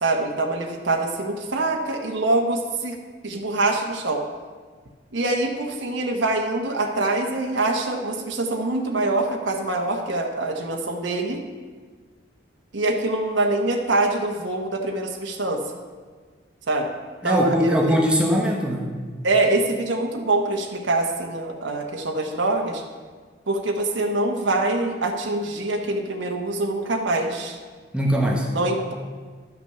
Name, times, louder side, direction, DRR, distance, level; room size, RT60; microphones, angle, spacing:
voice 1, 0.0-3.0 3.2-4.2 5.1-11.4 12.7-15.6 16.7-16.9 17.2-18.0 19.2-22.8 23.5-27.6 28.5-28.9, right 2 dB, 90° right, 2 dB, 1.1 m, -24 dB
voice 2, 17.2-18.9 27.9-28.5, equal, 5° right, -1 dB, 1.2 m, -21 dB
11.5 x 6.0 x 6.8 m, 1.5 s
head